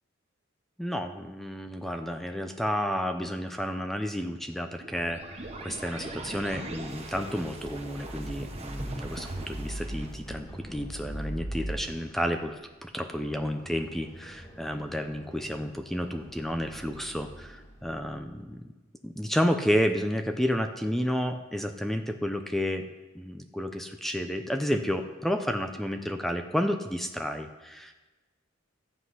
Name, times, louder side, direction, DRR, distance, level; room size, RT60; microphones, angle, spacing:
voice 1, 0.8-18.6 19.0-22.9 23.1-27.9, equal, ahead, 6 dB, 0.6 m, -31 dB
sound 1, 4.8-11.7, right 1 dB, 30° right, 1.3 m, -38 dB
Run, 8.8-18.5, equal, 20° left, 2.3 m, -50 dB
12.5 x 8.1 x 5.6 m, 1.2 s
head